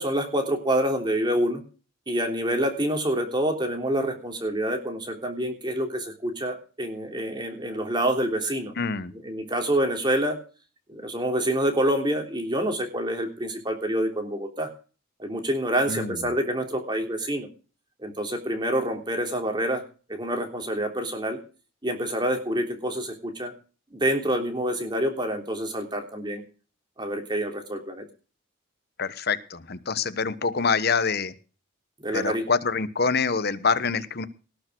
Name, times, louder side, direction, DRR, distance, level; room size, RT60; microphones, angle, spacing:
voice 1, 0.0-1.6 2.1-8.7 9.2-10.4 10.9-14.7 15.2-17.5 18.0-19.8 20.1-21.4 21.8-23.5 23.9-26.4 27.0-28.1 32.0-32.4, right 1 dB, 20° right, 4 dB, 3.2 m, -27 dB
voice 2, 8.8-9.1 15.9-16.3 29.0-31.3 32.1-34.3, left 5 dB, 50° left, 14 dB, 1.1 m, -26 dB
19.0 x 6.7 x 6.2 m, 0.36 s
head